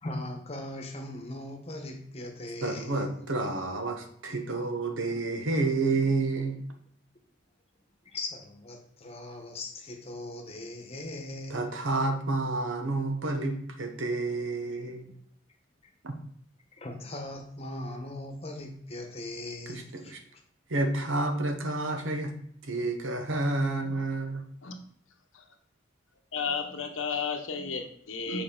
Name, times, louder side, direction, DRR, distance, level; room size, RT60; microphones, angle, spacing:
voice 1, 0.0-3.2 8.0-11.7 15.8-15.9 16.8-20.1, left 1 dB, 30° left, 2 dB, 1.1 m, -39 dB
voice 2, 2.6-6.6 11.5-15.1 16.0-16.1 19.7-20.2 20.7-22.3 22.7-24.4, right 2 dB, 70° right, 6 dB, 1.0 m, -29 dB
voice 3, 26.3-28.4, left 5 dB, 75° left, 5 dB, 0.9 m, -33 dB
6.8 x 4.8 x 3.8 m, 0.66 s
head